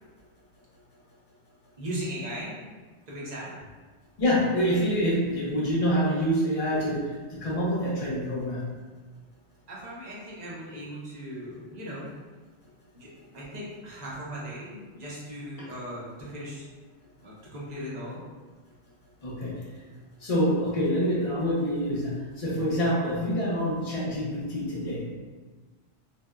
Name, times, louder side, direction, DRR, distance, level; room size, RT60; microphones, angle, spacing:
voice 1, 1.8-2.5 3.1-3.5 9.7-12.1 12.9-16.6 17.2-18.2, equal, 45° right, -6 dB, 0.6 m, -38 dB
voice 2, 4.2-8.6 19.2-19.5 20.2-25.1, equal, 45° left, -6 dB, 0.5 m, -26 dB
2.7 x 2.0 x 2.2 m, 1.3 s
omnidirectional pair, 1.2 m